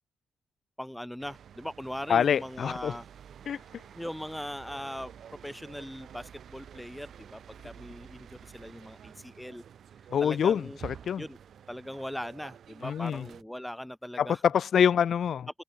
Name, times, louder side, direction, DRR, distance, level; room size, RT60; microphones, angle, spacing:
voice 1, 0.8-3.1 3.9-9.6 10.2-10.8 11.2-11.4 11.7-14.4 15.5-15.6, equal, 5° left, 5.4 m, -40 dB
sound 1, 1.2-13.4, right 8 dB, 65° right, 5.5 m, -50 dB
voice 2, 2.1-2.9 3.5-3.6 10.1-11.2 12.8-13.3 14.2-15.5, left 8 dB, 60° left, 0.9 m, -26 dB
cardioid pair, 90°, 0 cm